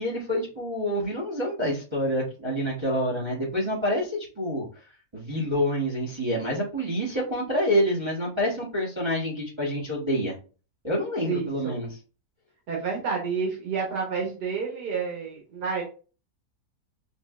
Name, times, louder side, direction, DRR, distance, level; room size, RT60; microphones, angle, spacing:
voice 1, 0.0-4.7 5.1-10.3 10.8-12.0, equal, 20° right, -5 dB, 0.8 m, -27 dB
voice 2, 11.3-11.7 12.7-15.8, right 5 dB, 80° right, -1 dB, 1.6 m, -29 dB
5.3 x 2.3 x 2.3 m, 0.35 s
omnidirectional pair, 1.8 m